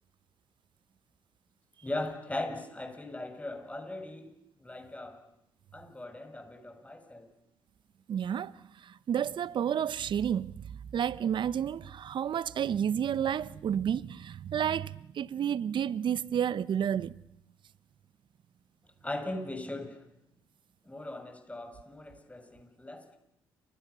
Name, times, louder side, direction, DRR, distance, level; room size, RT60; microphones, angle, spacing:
voice 1, 1.8-4.3 4.6-5.2 5.7-7.3 19.0-20.0 20.8-23.2, left 1 dB, 15° left, 6.4 m, -39 dB
voice 2, 8.1-8.5 8.8-10.7 10.9-17.1, right 9 dB, 60° right, 0.9 m, -30 dB
29.5 x 26.5 x 7.0 m
supercardioid pair, 60°, 9 cm